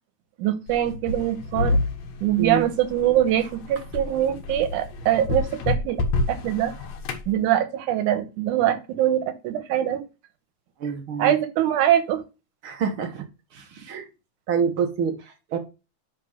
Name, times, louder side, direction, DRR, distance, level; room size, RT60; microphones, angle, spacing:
voice 1, 0.4-1.8 2.2-6.0 6.3-6.7 7.3-10.0 11.2-12.2, right 11 dB, 90° right, 2.5 m, -23 dB
sound 1, 0.7-7.3, left 2 dB, 70° left, 2.4 m, -29 dB
voice 2, 10.8-11.3 12.6-13.2 13.5-14.1 14.5-15.6, right 6 dB, 55° right, 1.7 m, -27 dB
10.0 x 3.7 x 4.9 m
omnidirectional pair, 3.4 m